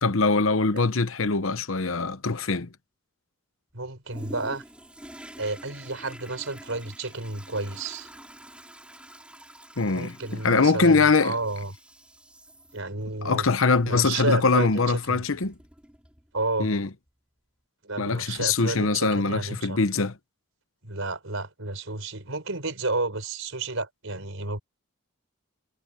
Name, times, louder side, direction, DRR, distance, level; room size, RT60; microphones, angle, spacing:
voice 1, 0.0-2.7 9.8-11.4 13.2-15.5 16.6-16.9 18.0-20.2, left 4 dB, 65° left, 1.0 m, -23 dB
voice 2, 3.7-4.6 5.4-8.1 9.9-11.7 12.7-13.5 13.8-15.2 16.3-16.7 17.8-19.8 20.8-24.6, right 3 dB, 65° right, 4.9 m, -31 dB
Toilet flush, 4.1-16.5 17.1-17.2, right 1 dB, 5° right, 4.4 m, -48 dB
head